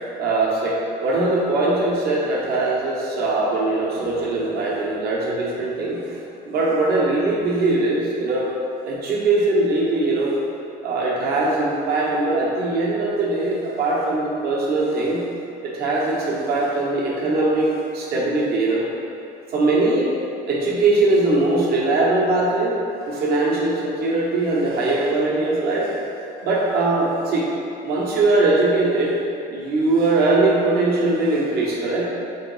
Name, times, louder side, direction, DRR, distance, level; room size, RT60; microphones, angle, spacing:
voice 1, 0.2-6.0 6.5-8.5 8.8-10.3 10.8-15.2 15.6-18.8 19.5-20.1 20.5-22.7 23.0-25.9 26.4-27.5 27.8-29.2 29.5-32.1, right 2 dB, 70° right, -5 dB, 0.8 m, -21 dB
3.7 x 3.0 x 3.0 m, 2.7 s
cardioid pair, 110°, 17 cm